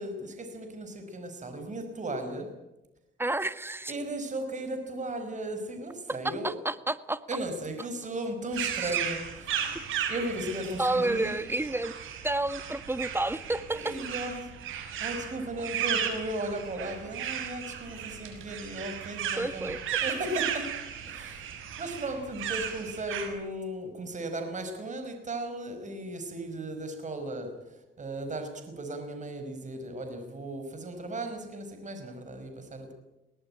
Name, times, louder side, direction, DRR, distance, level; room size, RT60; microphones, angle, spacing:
voice 1, 0.0-2.5 3.9-6.6 7.3-9.7 10.1-11.4 13.7-14.5 15.0-19.7 20.0-20.7 21.1-32.9, right 1 dB, 40° right, 6 dB, 5.2 m, -36 dB
voice 2, 3.2-3.9 6.2-7.2 8.8-8.9 10.8-12.0 12.2-13.9 19.4-20.0, right 2 dB, 10° right, 13 dB, 1.5 m, -30 dB
sound 1, 8.5-23.3, right 9 dB, 85° right, 5.7 m, -35 dB
20.5 x 19.0 x 10.0 m, 0.96 s
cardioid pair, 90°, 20 cm